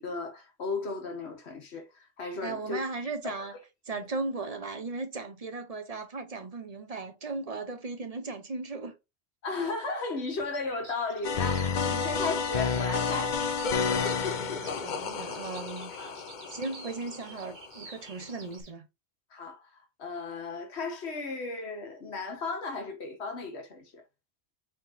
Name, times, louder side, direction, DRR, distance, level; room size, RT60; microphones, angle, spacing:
voice 1, 0.0-3.6 9.4-13.4 16.0-16.2 19.3-24.0, left 3 dB, 85° left, 1.5 m, -35 dB
voice 2, 2.4-3.5 3.9-8.9 14.4-15.9 16.5-18.9, right 3 dB, 40° right, 0.8 m, -37 dB
Bird vocalization bird call bird song, 10.3-18.7, right 4 dB, 70° right, 1.4 m, -50 dB
sound 1, 11.2-17.8 18.6-18.7, left 5 dB, 55° left, 0.6 m, -30 dB
4.4 x 3.7 x 2.7 m
omnidirectional pair, 1.1 m